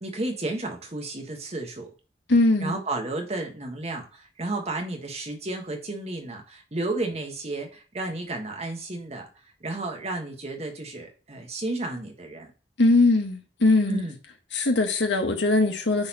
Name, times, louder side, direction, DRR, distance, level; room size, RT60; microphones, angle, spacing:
voice 1, 0.0-1.9 2.6-9.3 9.6-12.5 13.9-14.2, right 2 dB, 35° right, 2 dB, 1.4 m, -32 dB
voice 2, 2.3-2.8 12.8-14.1 14.5-16.1, left 2 dB, 90° left, 4 dB, 1.5 m, -21 dB
9.4 x 4.2 x 2.9 m, 0.34 s
head